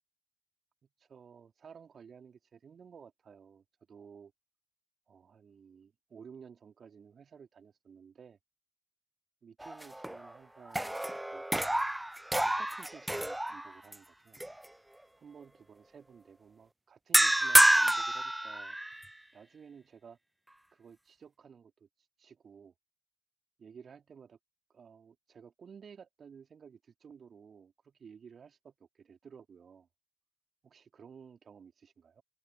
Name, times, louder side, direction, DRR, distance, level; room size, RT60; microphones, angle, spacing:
voice 1, 1.0-4.3 5.1-8.4 9.4-11.4 12.4-14.4 15.2-18.8 19.3-20.2 20.7-21.9 22.2-22.7 23.6-24.4 24.7-29.9 30.6-32.2, right 6 dB, 50° right, 2.9 m, -54 dB
sound 1, 9.6-10.3 10.7-13.9 14.4-14.6 17.1-19.1, right 1 dB, 10° right, 0.4 m, -28 dB
hypercardioid pair, 40°, 0 cm